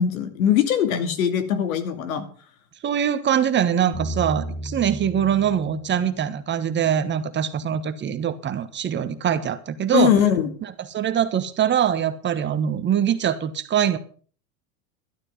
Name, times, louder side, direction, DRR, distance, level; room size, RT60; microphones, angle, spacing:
voice 1, 0.0-2.3 9.9-10.5, left 9 dB, 75° left, 10 dB, 2.5 m, -21 dB
voice 2, 2.8-10.1 10.6-14.0, right 9 dB, 25° right, 11 dB, 1.3 m, -23 dB
sound 1, 3.9-7.0, equal, 25° left, 4.6 m, -34 dB
12.5 x 12.0 x 5.4 m, 0.43 s
hypercardioid pair, 115°, 42 cm